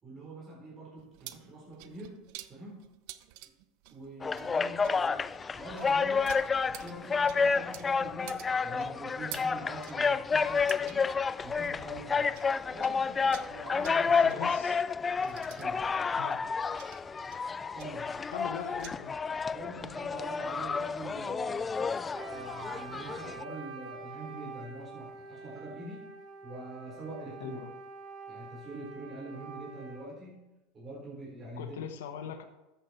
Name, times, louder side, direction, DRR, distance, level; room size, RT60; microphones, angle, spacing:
voice 1, 0.0-2.2 2.5-2.8 3.9-11.1 11.4-12.3 12.7-14.5 15.2-15.8 17.7-18.2 19.5-21.8 22.3-26.1 26.4-27.6 28.3-30.4 30.7-31.8, right 1 dB, 25° right, -4 dB, 4.2 m, -44 dB
sound 1, 1.0-12.5 12.8-18.9, right 15 dB, 60° right, 0.8 m, -50 dB
sound 2, 4.2-23.4, left 5 dB, 15° left, 0.3 m, -30 dB
voice 2, 14.1-14.8 16.2-16.4 18.3-19.2 27.4-27.7 31.6-32.4, left 8 dB, 85° left, 4 dB, 1.2 m, -41 dB
Wind instrument woodwind instrument, 22.1-30.1, right 4 dB, 40° right, 3.1 m, -46 dB
13.5 x 8.4 x 4.4 m, 1.0 s
supercardioid pair, 135°, 0 cm